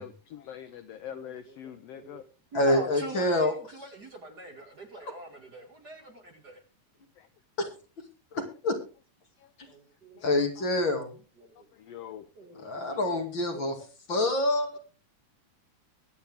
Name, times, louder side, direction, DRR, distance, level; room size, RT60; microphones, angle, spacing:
voice 1, 0.0-2.2 5.0-5.1 7.2-7.3 8.4-8.5 9.4-9.5 10.1-10.3 10.6-10.7 11.7-12.3 12.6-12.7, left 10 dB, 80° left, 1.4 m, -44 dB
voice 2, 1.1-2.2 2.5-6.6 9.7-10.4 11.4-11.7 12.4-13.1 13.5-13.8, right 1 dB, 35° right, 2.1 m, -44 dB
voice 3, 2.5-3.5 7.6-7.7 8.3-8.8 10.2-11.1 12.6-13.7 14.1-14.8, left 1 dB, 40° left, 2.8 m, -26 dB
23.0 x 8.6 x 3.5 m
omnidirectional pair, 3.6 m